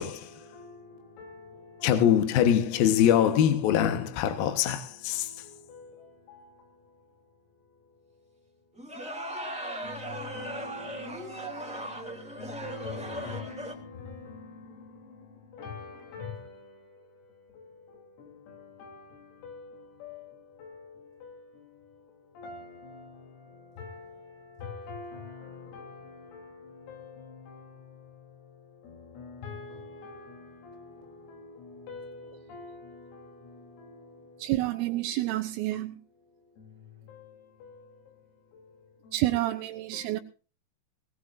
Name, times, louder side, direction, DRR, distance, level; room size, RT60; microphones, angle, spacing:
voice 1, 0.0-2.2 2.7-3.7 4.2-7.0 9.8-34.5 36.6-38.2 38.5-39.2 39.9-40.2, left 4 dB, 85° left, 6.2 m, -46 dB
voice 2, 1.8-5.3, left 9 dB, 70° left, 2.4 m, -23 dB
sound 1, 8.7-13.7, right 1 dB, ahead, 1.5 m, -38 dB
voice 3, 34.4-36.0 39.1-40.2, right 16 dB, 85° right, 3.4 m, -29 dB
20.5 x 18.0 x 2.6 m
omnidirectional pair, 5.8 m